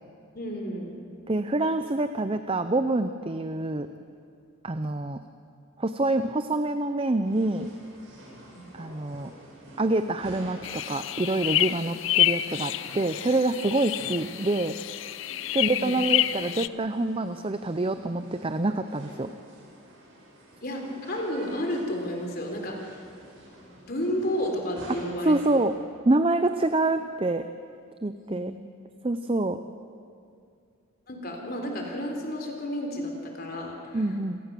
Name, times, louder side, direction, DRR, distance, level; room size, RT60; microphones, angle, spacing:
voice 1, 0.3-1.0 8.5-8.7 15.6-16.0 20.6-20.8 21.1-23.0 23.9-25.4 28.1-28.4 31.1-34.0, equal, 45° left, 2 dB, 3.6 m, -32 dB
voice 2, 1.3-3.9 4.6-5.2 5.8-7.7 8.7-9.3 9.8-14.8 15.5-19.3 25.2-25.7 26.0-27.5 28.0-28.5 29.0-29.6 33.9-34.4, right 2 dB, 25° right, 9 dB, 0.5 m, -26 dB
sound 1, 7.2-25.8, right 1 dB, 65° right, 7.5 m, -49 dB
sound 2, 10.6-16.7, left 13 dB, 65° left, 0.5 m, -28 dB
27.5 x 18.0 x 6.9 m, 2.4 s
head